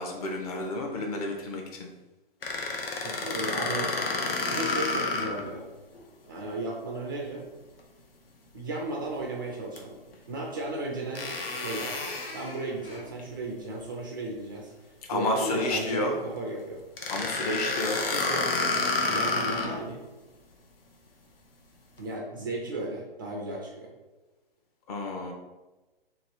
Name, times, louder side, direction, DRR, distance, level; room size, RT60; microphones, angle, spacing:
voice 1, 0.0-1.9 15.1-16.2 17.1-18.0 24.9-25.3, left 2 dB, 40° left, 2 dB, 0.8 m, -30 dB
sound 1, 2.4-5.5 6.0-6.1 9.8-9.9 11.2-13.1 17.0-19.8, left 3 dB, 75° left, 0.9 m, -30 dB
voice 2, 3.0-4.0 4.5-5.7 6.3-7.5 8.5-10.0 10.3-11.9 12.3-14.7 15.1-16.8 18.0-18.5 19.1-20.0 22.0-23.9, right 2 dB, 25° right, -1 dB, 0.4 m, -35 dB
3.0 x 2.9 x 4.5 m, 1.1 s
hypercardioid pair, 140°, 29 cm